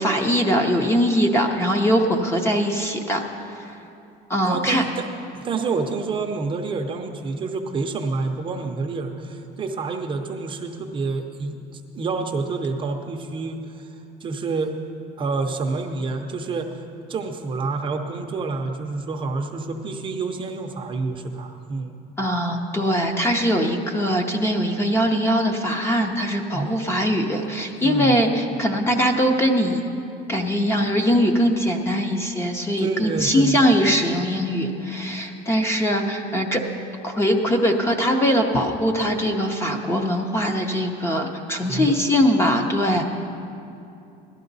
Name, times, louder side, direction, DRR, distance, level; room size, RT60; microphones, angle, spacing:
voice 1, 0.0-3.2 4.3-4.8 22.2-29.8 30.3-36.6 37.0-43.0, equal, 15° left, 4 dB, 0.6 m, -21 dB
voice 2, 4.4-5.1 5.3-13.9 14.2-14.7 15.2-16.8 17.1-21.9 26.5-26.8 27.8-28.2 32.8-33.6 41.7-42.0 42.5-43.0, right 4 dB, 25° right, 4 dB, 0.6 m, -28 dB
17.0 x 12.0 x 4.0 m, 2.7 s
cardioid pair, 175°, 19 cm